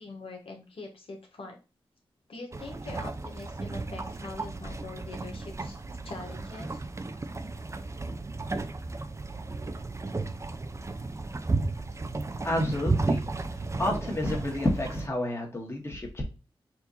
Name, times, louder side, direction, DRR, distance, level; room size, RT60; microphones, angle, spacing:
voice 1, 0.0-1.6 2.3-5.8 6.0-6.8, left 3 dB, 70° left, 1 dB, 1.4 m, -43 dB
sound 1, 2.5-15.1, right 3 dB, 30° right, 0.5 m, -34 dB
voice 2, 12.4-13.3 13.8-16.2, left 1 dB, 25° left, -1 dB, 1.6 m, -29 dB
4.5 x 2.7 x 4.1 m, 0.30 s
cardioid pair, 60°, 10 cm